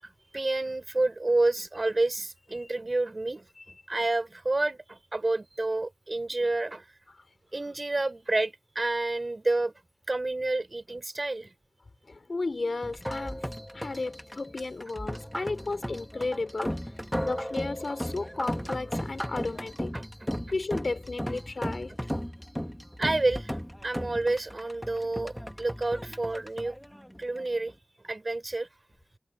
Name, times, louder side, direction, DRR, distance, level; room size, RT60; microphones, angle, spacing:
voice 1, 0.0-6.9 7.5-9.7 10.1-11.5 17.0-17.1 19.9-20.3 22.2-22.3 23.0-23.6 23.8-26.8 27.2-27.8 28.0-28.7, right 2 dB, 40° right, 6.0 m, -29 dB
voice 2, 12.1-16.8 17.2-19.9 20.5-21.9, left 3 dB, 55° left, 3.9 m, -33 dB
sound 1, 12.8-27.7, equal, 5° left, 2.5 m, -36 dB
wide cardioid pair, 65°, 0 cm